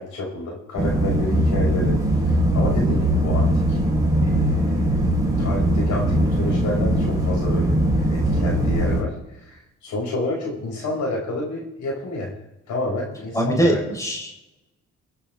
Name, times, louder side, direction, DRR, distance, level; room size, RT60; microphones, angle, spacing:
voice 1, 0.0-1.9 2.3-3.8 4.2-5.0 5.4-7.8 8.1-9.1 9.4-12.3 12.7-13.8, left 2 dB, 75° left, -3 dB, 6.8 m, -29 dB
sound 1, 0.8-9.0, right 1 dB, 10° right, 5.3 m, -20 dB
voice 2, 13.3-14.5, right 1 dB, 10° left, 0 dB, 4.8 m, -22 dB
23.5 x 10.0 x 3.8 m, 0.95 s
cardioid pair, 90°, 30 cm